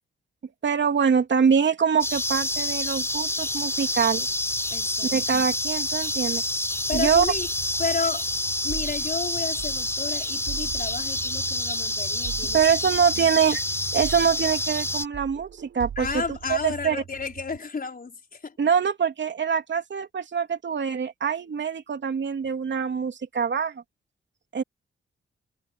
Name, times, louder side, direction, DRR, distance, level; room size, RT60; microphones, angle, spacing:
voice 1, 0.6-4.3 5.1-6.4 6.9-7.2 12.5-13.6 13.9-16.2 16.5-17.0 18.6-23.8 24.5-24.6, right 7 dB, 60° right, 3.2 m, -24 dB
sound 1, 2.0-15.1, left 1 dB, 10° left, 4.7 m, -28 dB
voice 2, 4.7-5.2 6.9-7.5 7.8-8.3 8.6-12.6 13.2-13.3 16.0-18.6, left 5 dB, 45° left, 5.2 m, -32 dB
sound 2, 6.9-10.0 10.5-14.9 15.1-17.6, right 8 dB, 75° right, 5.1 m, -40 dB
cardioid pair, 55°, 21 cm